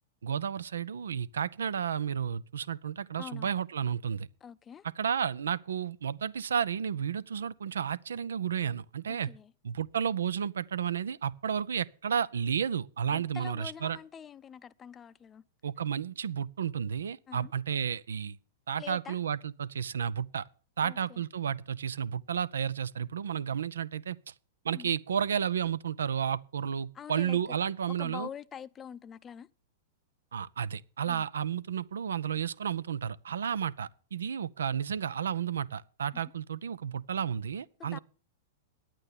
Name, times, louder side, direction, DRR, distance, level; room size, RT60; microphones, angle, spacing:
voice 1, 0.2-4.3 5.0-9.3 9.6-14.0 15.6-18.4 18.7-20.5 20.8-24.3 24.6-28.3 30.3-38.0, right 8 dB, 80° right, 0.5 m, -32 dB
voice 2, 3.2-3.6 4.4-4.9 9.1-9.5 13.1-15.4 17.3-17.5 18.8-19.2 20.8-21.2 24.7-24.9 26.9-27.6 28.0-29.5 31.1-31.2 36.1-36.2 37.8-38.0, left 8 dB, 25° left, 0.5 m, -45 dB
9.8 x 8.9 x 7.1 m
hypercardioid pair, 110°, 0 cm